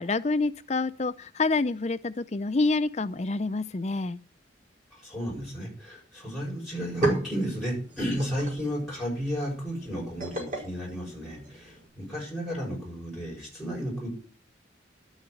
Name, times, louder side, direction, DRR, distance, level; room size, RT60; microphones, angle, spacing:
voice 1, 0.0-4.2, left 3 dB, 35° left, 14 dB, 0.5 m, -27 dB
voice 2, 4.9-14.1, equal, ahead, -5 dB, 7.0 m, -33 dB
sound 1, 6.7-11.9, right 2 dB, 40° right, 4.7 m, -35 dB
11.5 x 7.3 x 8.0 m, 0.40 s
head